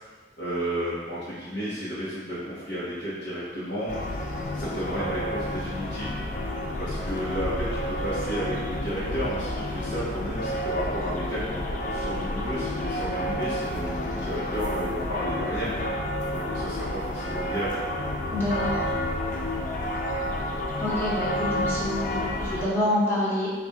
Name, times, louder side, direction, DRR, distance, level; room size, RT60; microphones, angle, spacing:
voice 1, 0.4-3.9 4.5-6.1 6.8-15.7 16.3-17.9 20.7-20.9, equal, 85° left, -11 dB, 1.0 m, -32 dB
sound 1, 3.9-22.6, left 1 dB, 45° left, 0.4 m, -30 dB
voice 2, 18.3-18.8 20.8-23.5, left 1 dB, 15° left, -8 dB, 0.9 m, -27 dB
4.0 x 2.5 x 3.5 m, 1.4 s
head